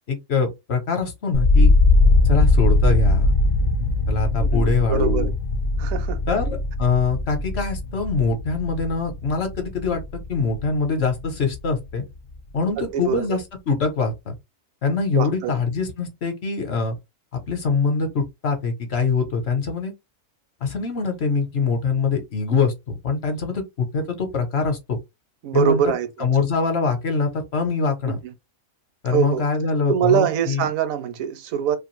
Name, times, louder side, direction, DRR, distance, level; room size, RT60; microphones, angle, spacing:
voice 1, 0.1-1.7 2.2-3.3 4.1-5.3 6.3-10.0 10.3-12.0 12.5-13.4 13.7-14.3 14.8-17.0 17.3-19.9 20.6-25.0 25.5-25.8 26.2-28.2 29.0-30.6, left 4 dB, 55° left, 0.9 m, -23 dB
sound 1, 1.3-11.3 11.6-12.3, left 2 dB, 85° left, 0.4 m, -20 dB
voice 2, 4.4-5.3 5.8-6.2 12.9-13.4 15.1-15.5 25.4-26.1 28.1-28.3 29.1-29.4 29.9-31.8, right 8 dB, 85° right, 1.0 m, -23 dB
2.5 x 2.5 x 3.0 m
omnidirectional pair, 1.4 m